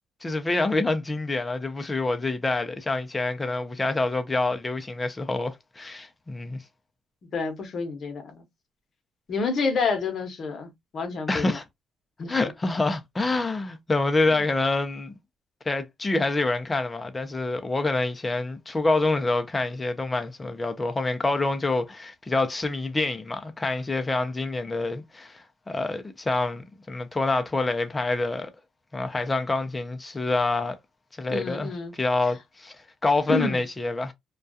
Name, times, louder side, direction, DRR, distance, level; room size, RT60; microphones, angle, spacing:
voice 1, 0.2-6.6 11.3-11.6 12.3-15.2 15.7-28.5 28.9-30.8 31.2-34.1, left 2 dB, 20° left, 0.4 m, -27 dB
voice 2, 7.3-8.4 9.3-11.6 12.2-12.3 31.3-32.0 33.3-33.6, left 4 dB, 50° left, 0.8 m, -28 dB
2.3 x 2.2 x 2.5 m
cardioid pair, 115°, 0 cm